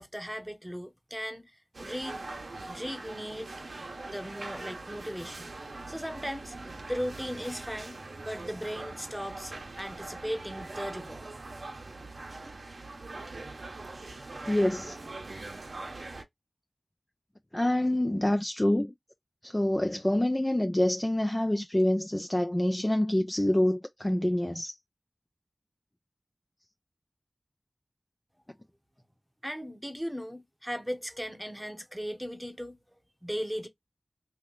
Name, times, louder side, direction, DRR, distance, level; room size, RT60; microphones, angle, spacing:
voice 1, 0.0-2.2 2.7-3.5 4.1-5.5 5.9-6.6 6.9-8.0 8.2-11.3 29.4-32.8 33.2-33.7, equal, 5° right, 0.9 m, -37 dB
sound 1, 1.7-16.2, right 2 dB, 80° right, 0.8 m, -42 dB
voice 2, 14.5-15.0 17.5-18.9 19.4-24.8, left 1 dB, 20° left, 0.4 m, -26 dB
3.0 x 2.7 x 3.8 m
wide cardioid pair, 45°, 0 cm